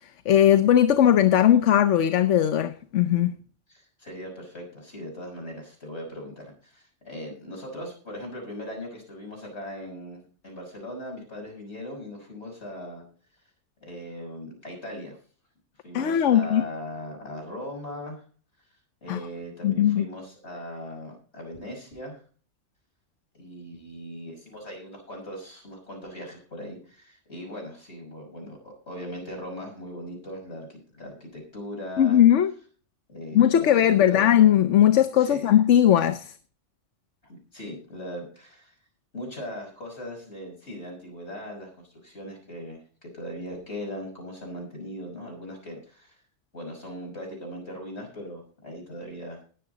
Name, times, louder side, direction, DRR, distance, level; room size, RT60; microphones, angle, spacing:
voice 1, 0.3-3.3 15.9-16.6 19.1-19.2 19.6-20.0 32.0-32.5 33.3-36.3, left 10 dB, 75° left, 1.1 m, -19 dB
voice 2, 3.7-13.0 13.8-15.2 15.8-18.2 19.0-22.2 23.3-32.2 33.1-34.5 35.1-35.6 37.2-38.7 39.1-46.2 46.5-49.4, equal, 60° left, 6.2 m, -39 dB
20.0 x 7.4 x 3.9 m
omnidirectional pair, 1.2 m